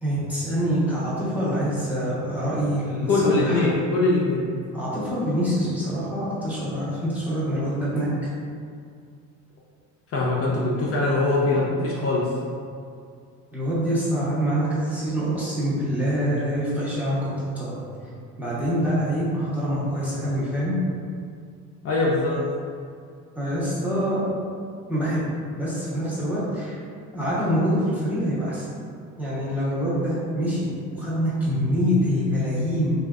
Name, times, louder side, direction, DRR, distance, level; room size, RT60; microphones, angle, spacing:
voice 1, 0.0-3.7 4.7-8.3 11.0-11.1 13.5-17.8 18.4-20.8 23.3-24.3 24.9-26.8 27.1-28.7 29.2-32.9, equal, 5° right, -10 dB, 0.7 m, -25 dB
voice 2, 3.1-4.4 10.1-12.3 21.8-22.4, left 2 dB, 50° left, -5 dB, 0.5 m, -22 dB
2.5 x 2.4 x 2.3 m, 2.2 s
cardioid pair, 110°, 31 cm